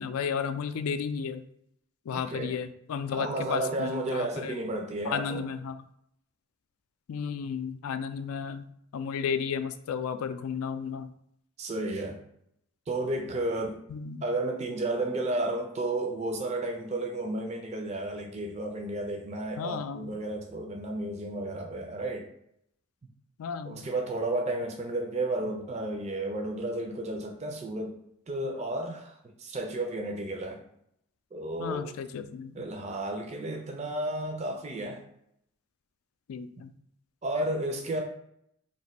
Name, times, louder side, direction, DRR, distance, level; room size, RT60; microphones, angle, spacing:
voice 1, 0.0-1.4 2.1-4.5 5.1-5.8 7.1-8.7 8.9-11.1 13.9-14.2 19.6-20.1 23.4-23.8 31.6-32.6 36.3-36.7, left 6 dB, 90° left, 11 dB, 0.3 m, -33 dB
voice 2, 3.1-5.4 11.6-12.2 12.9-13.8 14.2-22.3 23.6-27.9 28.3-30.6 31.3-31.9 32.5-35.0 37.2-38.0, right 2 dB, 30° right, 2 dB, 0.4 m, -32 dB
3.0 x 2.5 x 4.2 m, 0.73 s
head